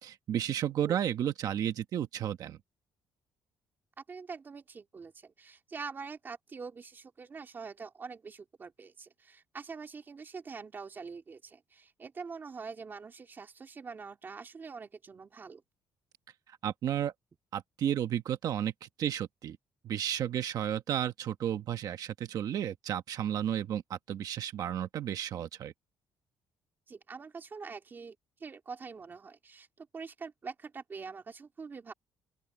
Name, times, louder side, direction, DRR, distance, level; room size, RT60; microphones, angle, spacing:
voice 1, 0.0-2.6 16.5-17.1 17.5-19.6 19.8-25.7, right 10 dB, 50° right, 1.2 m, -33 dB
voice 2, 4.1-15.6 26.9-31.9, right 5 dB, 25° right, 2.5 m, -45 dB
open air
cardioid pair, 165°, 8 cm